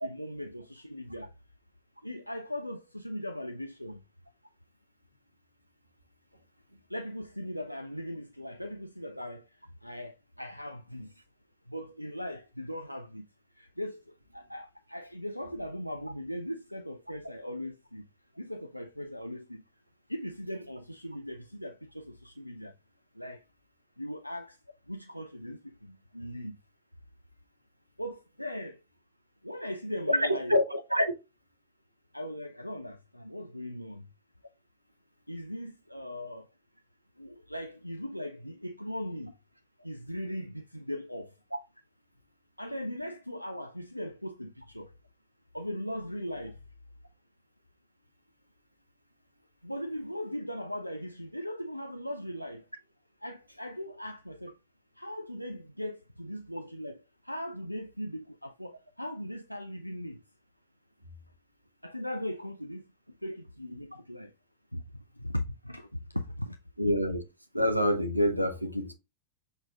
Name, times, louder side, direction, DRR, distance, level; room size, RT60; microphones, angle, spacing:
voice 1, 0.0-1.3 2.0-4.0 6.9-11.2 11.7-13.3 13.5-18.0 18.4-19.6 20.1-22.7 23.1-23.4 24.0-24.6 24.9-26.6 28.0-28.8 29.4-30.6 32.1-34.1 35.3-36.5 37.2-39.3 39.8-41.4 42.6-44.9 45.5-46.6 49.6-52.7 53.2-54.6 55.0-60.2 61.8-64.3 64.7-66.6, equal, 90° left, 0.3 m, -39 dB
voice 2, 30.1-31.1 41.5-41.6 66.8-67.2 67.5-68.9, equal, 90° right, 0.7 m, -26 dB
6.1 x 3.8 x 2.3 m
figure-of-eight pair, 90°, 0 cm